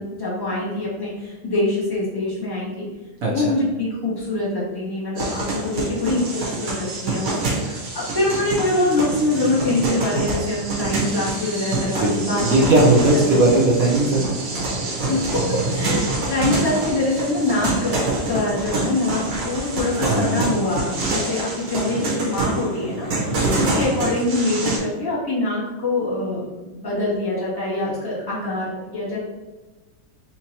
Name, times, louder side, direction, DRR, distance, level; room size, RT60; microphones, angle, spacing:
voice 1, 0.0-2.9 3.3-12.7 13.1-13.4 15.1-23.1 23.3-29.2, left 2 dB, 15° left, -8 dB, 1.3 m, -24 dB
voice 2, 3.2-3.5 11.9-14.3 20.0-20.5 23.3-23.6, right 2 dB, 60° right, -4 dB, 0.9 m, -18 dB
sound 1, 5.2-24.8, right 2 dB, 90° right, 2.0 m, -26 dB
6.0 x 2.9 x 2.8 m, 1.2 s
omnidirectional pair, 2.2 m